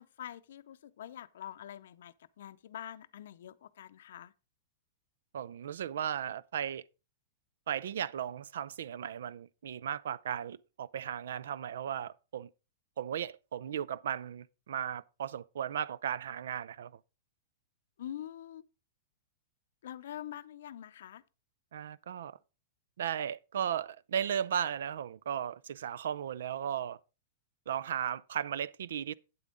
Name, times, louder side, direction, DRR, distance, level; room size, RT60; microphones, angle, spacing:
voice 1, 0.0-4.3 18.0-18.6 19.8-21.2, left 11 dB, 75° left, 0.5 m, -45 dB
voice 2, 5.3-6.8 7.7-12.5 13.0-17.0 21.7-22.4 23.0-27.0 27.7-29.1, right 9 dB, 80° right, 0.4 m, -36 dB
8.5 x 8.3 x 3.8 m
hypercardioid pair, 130°, 0 cm